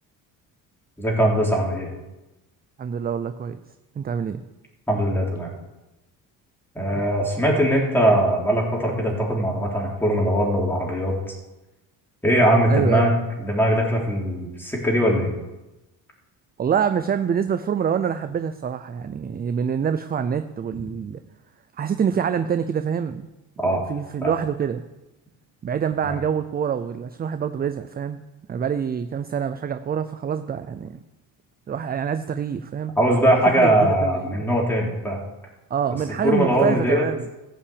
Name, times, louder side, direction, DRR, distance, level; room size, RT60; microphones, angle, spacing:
voice 1, 1.0-1.9 4.9-5.5 6.8-11.4 12.2-13.1 13.4-15.3 23.6-23.8 24.2-24.3 26.0-26.2 33.0-35.2 36.2-37.1, equal, 5° left, -2 dB, 3.8 m, -21 dB
voice 2, 2.8-3.6 4.0-4.4 7.0-7.1 12.7-13.1 16.6-21.2 21.8-23.3 23.6-24.8 25.6-28.2 28.5-30.9 31.7-32.9 33.5-33.7 34.0-34.4 35.7-37.2, right 7 dB, 25° right, 10 dB, 0.5 m, -26 dB
14.5 x 5.8 x 8.7 m, 1.0 s
cardioid pair, 125°, 37 cm